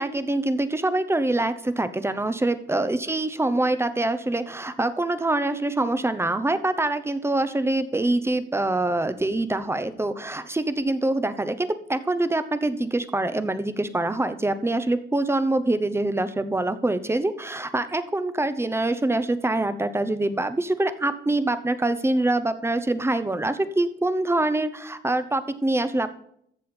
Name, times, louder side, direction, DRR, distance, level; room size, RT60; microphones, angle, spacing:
voice 1, 0.0-26.1, right 2 dB, 10° right, 11 dB, 0.8 m, -25 dB
14.5 x 7.0 x 4.4 m, 0.71 s
cardioid pair, 90°, 20 cm